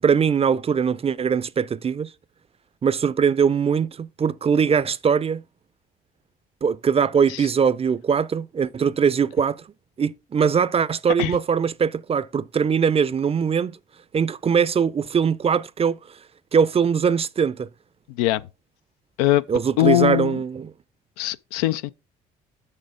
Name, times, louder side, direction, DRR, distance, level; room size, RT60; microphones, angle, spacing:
voice 1, 0.0-2.1 2.8-5.4 6.6-9.6 10.0-13.8 14.1-16.0 16.5-17.7 19.5-20.7, right 6 dB, 30° right, 0.5 m, -21 dB
voice 2, 19.8-20.4 21.2-21.9, left 14 dB, 85° left, 0.4 m, -21 dB
6.5 x 6.5 x 3.6 m
hypercardioid pair, 60°, 19 cm